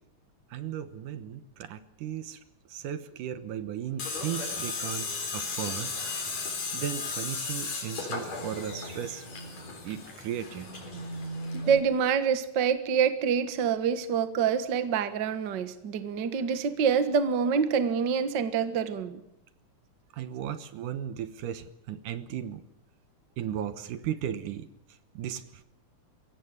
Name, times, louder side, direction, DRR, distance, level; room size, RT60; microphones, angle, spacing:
voice 1, 0.5-2.4 2.7-5.9 6.7-9.3 9.8-10.7 20.2-22.6 23.4-24.7 25.2-25.4, right 10 dB, 80° right, 12 dB, 2.6 m, -36 dB
Tools, 4.0-11.8, left 3 dB, 55° left, 5.0 m, -35 dB
voice 2, 11.7-19.2, right 7 dB, 50° right, 11 dB, 1.5 m, -26 dB
22.5 x 17.0 x 9.4 m, 0.80 s
omnidirectional pair, 3.8 m